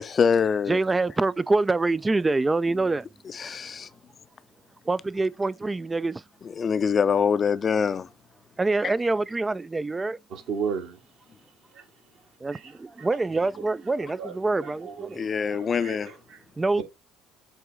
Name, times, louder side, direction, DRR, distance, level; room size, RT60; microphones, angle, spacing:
voice 1, 0.0-0.8 3.3-3.9 6.6-8.1 8.8-8.9 15.1-16.1, left 6 dB, 35° left, 0.5 m, -24 dB
voice 2, 0.7-3.1 4.9-6.2 8.6-10.2 12.4-15.2 16.6-16.8, right 3 dB, 20° right, 0.3 m, -25 dB
voice 3, 10.3-11.0 11.7-11.8 12.5-12.7 13.0-13.1 13.6-13.7 14.0-16.4, right 6 dB, 60° right, 2.0 m, -35 dB
8.0 x 3.6 x 3.5 m
hypercardioid pair, 60°, 0 cm